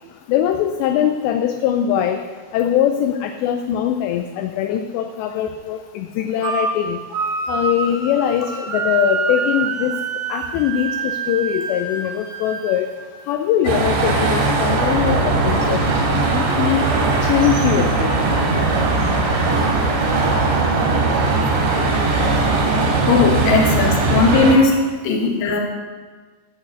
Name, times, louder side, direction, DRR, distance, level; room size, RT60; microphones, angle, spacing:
voice 1, 0.3-2.2 2.5-7.0 7.5-10.0 10.3-12.9 13.3-16.9 17.2-18.1, left 10 dB, 80° left, 6 dB, 2.7 m, -21 dB
sound 1, 6.4-6.8 7.1-13.2, right 5 dB, 65° right, 2.5 m, -26 dB
sound 2, 13.6-24.5, right 3 dB, 85° right, 4.7 m, -19 dB
voice 2, 23.1-24.8 25.0-25.6, left 4 dB, 60° left, 0 dB, 2.9 m, -17 dB
11.5 x 6.4 x 8.1 m, 1.4 s
omnidirectional pair, 5.2 m